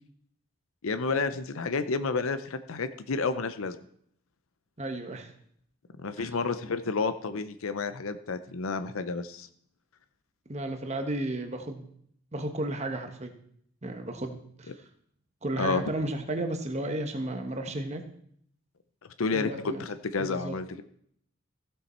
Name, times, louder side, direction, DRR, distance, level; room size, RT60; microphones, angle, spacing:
voice 1, 0.8-3.8 6.0-9.5 15.6-15.8 19.2-20.8, left 4 dB, 75° left, 11 dB, 0.6 m, -30 dB
voice 2, 4.8-5.3 6.2-6.3 10.5-11.9 12.3-13.3 13.8-14.7 15.4-18.0 19.3-19.8 20.2-20.6, right 1 dB, 30° right, 6 dB, 1.1 m, -33 dB
15.5 x 6.9 x 4.3 m, 0.67 s
head